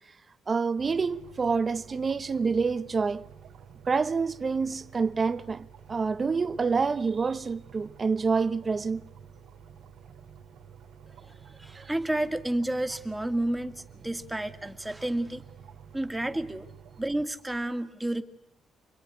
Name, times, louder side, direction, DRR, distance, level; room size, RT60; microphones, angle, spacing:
voice 1, 0.5-3.3 3.9-9.0, right 5 dB, 35° right, 1.0 m, -27 dB
sound 1, 0.8-17.2, right 7 dB, 85° right, 3.5 m, -50 dB
voice 2, 11.2-15.4 15.9-16.7 17.0-18.2, right 1 dB, 10° right, 2.0 m, -31 dB
28.0 x 21.5 x 9.7 m
cardioid pair, 90°, 0 cm